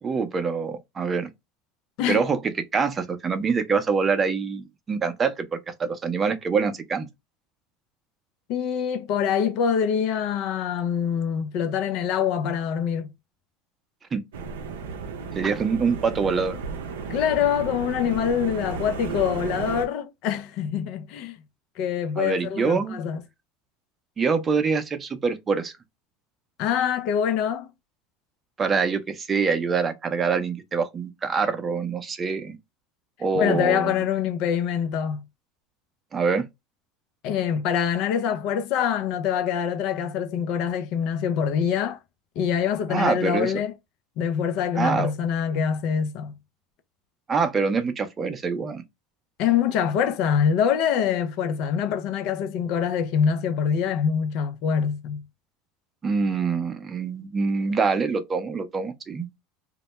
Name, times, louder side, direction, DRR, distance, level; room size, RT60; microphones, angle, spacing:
voice 1, 0.0-1.3 2.1-7.1 14.1-14.2 15.3-16.6 22.2-23.0 24.2-25.7 28.6-32.6 33.2-33.9 36.1-36.4 42.9-43.5 44.8-45.1 47.3-48.8 56.0-59.3, right 5 dB, 30° right, 0.5 m, -25 dB
voice 2, 8.5-13.1 17.1-21.4 21.8-23.2 26.6-27.7 33.3-35.2 37.2-42.0 42.4-43.7 44.2-46.3 49.4-55.2, left 8 dB, 60° left, 0.4 m, -25 dB
sound 1, 14.3-19.9, right 5 dB, 80° right, 0.5 m, -34 dB
2.2 x 2.0 x 2.9 m
hypercardioid pair, 85°, 0 cm